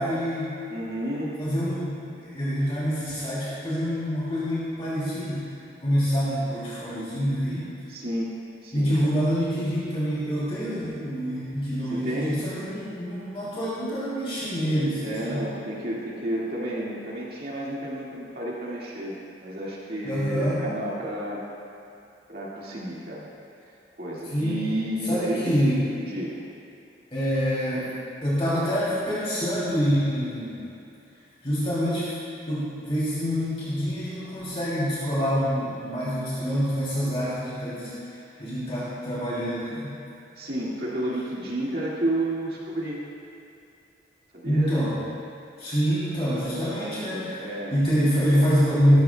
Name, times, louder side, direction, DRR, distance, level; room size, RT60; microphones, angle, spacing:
voice 1, 0.0-0.5 1.4-5.5 5.8-7.7 8.7-15.4 20.0-20.6 24.2-24.7 25.0-25.9 27.1-27.9 28.2-30.6 31.4-32.1 32.5-39.9 44.4-45.0 45.6-47.4 47.7-49.0, equal, 30° left, -10 dB, 2.9 m, -26 dB
voice 2, 0.7-1.3 7.9-8.3 8.6-9.2 11.9-12.4 15.0-21.4 22.3-23.3 24.0-25.5 26.1-26.4 40.4-43.0 44.3-44.7 46.6-47.7, right 1 dB, 55° right, -6 dB, 2.0 m, -31 dB
19.0 x 13.5 x 2.3 m, 2.6 s
head